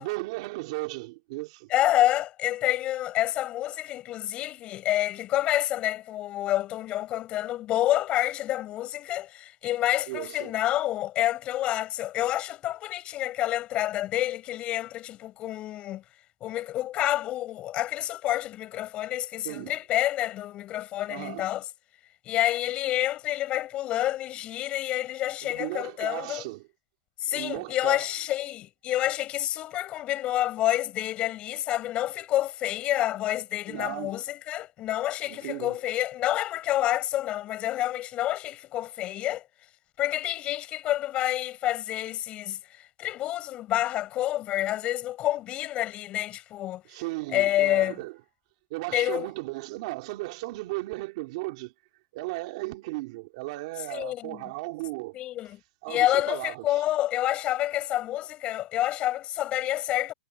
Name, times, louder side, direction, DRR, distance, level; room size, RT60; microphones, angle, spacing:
voice 1, 0.0-1.7 10.1-10.5 19.4-19.8 21.1-21.5 25.4-26.7 27.3-28.1 33.7-34.2 35.3-35.8 46.9-48.2 48.7-51.7 52.1-55.2 55.8-56.8, right 22 dB, 40° right, 3.0 m, -36 dB
voice 2, 1.7-16.0 16.4-21.6 22.3-26.4 27.2-39.4 40.0-46.8 47.3-47.9 48.9-49.3 53.9-54.4 55.1-55.6 55.9-60.1, left 14 dB, 20° left, 5.5 m, -28 dB
supercardioid pair, 170°, 5 cm